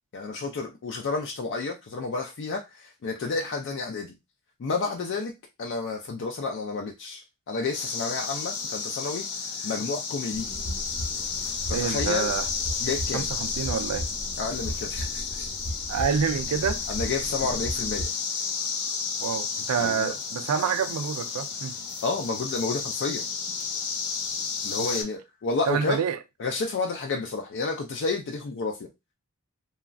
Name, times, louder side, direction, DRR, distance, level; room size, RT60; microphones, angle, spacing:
voice 1, 0.1-4.1 4.6-5.3 5.6-9.2 9.6-10.5 11.7-12.3 12.8-13.3 14.4-15.5 16.9-18.1 19.8-20.1 22.0-23.3 24.6-26.0 26.4-28.9, left 4 dB, 55° left, 0.4 m, -30 dB
sound 1, 7.7-25.0, left 5 dB, 75° left, 0.8 m, -32 dB
sound 2, 10.3-18.1, equal, 30° left, 0.7 m, -36 dB
voice 2, 11.7-12.5 13.1-14.1 15.9-16.8 19.2-21.7 24.8-24.9 25.7-26.2, right 6 dB, 75° right, 0.4 m, -27 dB
3.0 x 2.3 x 2.5 m
head